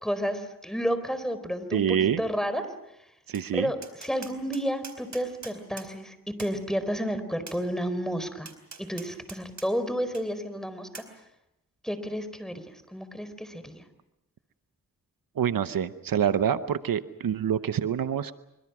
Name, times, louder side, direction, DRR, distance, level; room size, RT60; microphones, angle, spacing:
voice 1, 0.0-2.6 3.5-8.5 8.8-11.0 11.8-13.8, equal, ahead, 11 dB, 4.3 m, -31 dB
voice 2, 1.7-2.2 3.3-3.7 15.4-18.3, right 9 dB, 90° right, 12 dB, 0.9 m, -26 dB
Tap, 3.3-3.5 3.8-5.9 6.4-6.6 7.5-7.6 8.5-9.7 10.1-10.2 10.9-11.1, right 4 dB, 60° right, 4.4 m, -44 dB
26.5 x 24.5 x 6.1 m, 0.87 s
cardioid pair, 50°, 33 cm